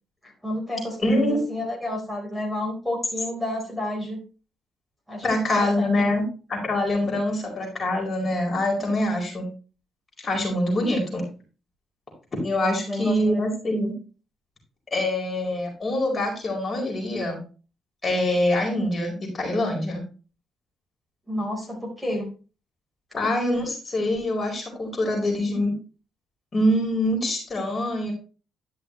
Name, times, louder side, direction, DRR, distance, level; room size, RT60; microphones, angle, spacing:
voice 1, 0.2-4.2 5.1-6.0 7.2-7.3 12.6-13.5 21.3-22.3, left 1 dB, ahead, -3 dB, 4.5 m, -30 dB
voice 2, 1.0-1.4 5.2-6.2 6.5-9.5 10.2-11.2 12.4-13.9 14.9-17.4 18.0-20.0 23.1-25.7 26.5-28.1, left 1 dB, 35° left, 0 dB, 4.7 m, -24 dB
12.0 x 6.1 x 3.2 m, 0.35 s
cardioid pair, 90°, 0 cm